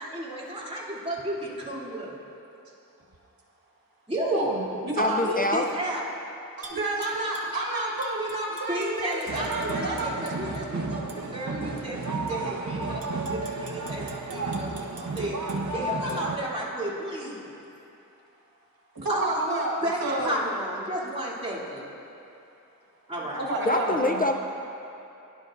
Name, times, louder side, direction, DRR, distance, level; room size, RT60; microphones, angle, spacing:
voice 1, 0.0-2.2 4.1-4.4 5.5-6.0 8.7-17.5 19.1-19.4 19.8-21.9 23.1-23.4, right 1 dB, 20° right, -9 dB, 2.8 m, -33 dB
voice 2, 4.2-5.4 6.6-10.4 18.9-20.5 23.3-24.3, right 1 dB, 90° right, -3 dB, 1.5 m, -30 dB
voice 3, 5.0-5.7 23.6-24.4, left 1 dB, 25° left, 3 dB, 0.5 m, -24 dB
Tap / Glass, 6.6-7.6 8.0-10.6 11.1-11.2 11.8-12.3 12.8-15.6 16.1-16.2, right 3 dB, 75° right, 1.1 m, -47 dB
sound 1, 9.3-16.4, right 2 dB, 55° right, 0.8 m, -32 dB
18.0 x 10.5 x 2.5 m, 2.8 s
wide cardioid pair, 75°, 34 cm